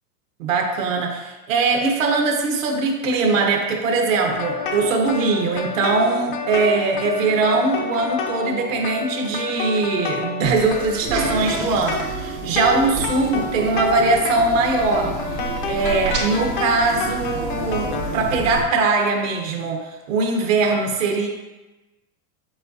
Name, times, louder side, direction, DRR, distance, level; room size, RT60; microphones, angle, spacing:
voice 1, 0.4-15.1 15.6-21.3, right 3 dB, 50° right, 1 dB, 1.2 m, -21 dB
sound 1, 4.3-18.1, left 5 dB, 35° left, 0.4 m, -29 dB
sound 2, 10.4-18.6, right 4 dB, 90° right, 2.4 m, -30 dB
8.0 x 7.6 x 2.7 m, 1.1 s
supercardioid pair, 175°, 48 cm